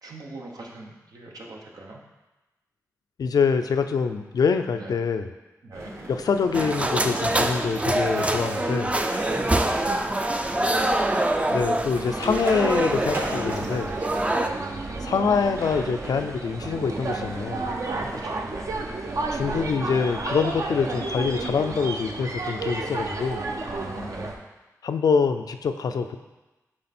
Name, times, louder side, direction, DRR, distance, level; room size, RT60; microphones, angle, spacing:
voice 1, 0.0-2.0 4.7-4.9 5.6-5.9 9.1-11.2 14.1-14.7 17.9-18.7 23.6-24.4, right 2 dB, 80° right, -1 dB, 1.1 m, -41 dB
voice 2, 3.2-5.3 6.1-8.9 11.5-13.9 15.0-17.7 19.3-23.4 24.8-26.2, left 5 dB, 80° left, 8 dB, 0.5 m, -25 dB
sound 1, 5.7-18.2, right 1 dB, 40° right, 1.1 m, -39 dB
sound 2, 6.5-14.5, right 1 dB, 20° right, 0.5 m, -25 dB
sound 3, 11.9-24.4, right 3 dB, 60° right, 0.8 m, -32 dB
7.7 x 3.9 x 4.3 m, 1.1 s
cardioid pair, 75°, 6 cm